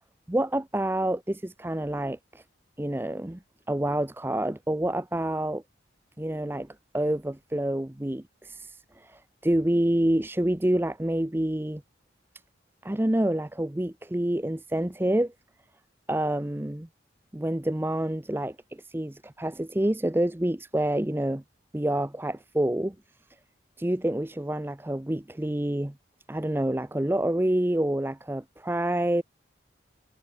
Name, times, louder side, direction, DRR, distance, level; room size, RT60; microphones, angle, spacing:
voice 1, 0.3-2.4 2.8-3.4 3.7-5.6 6.2-6.7 6.9-8.7 9.0-11.8 12.8-15.3 16.1-16.9 17.3-18.6 18.9-21.4 21.7-22.9 23.8-25.9 26.3-29.2, right 1 dB, 10° right, 0.6 m, -27 dB
head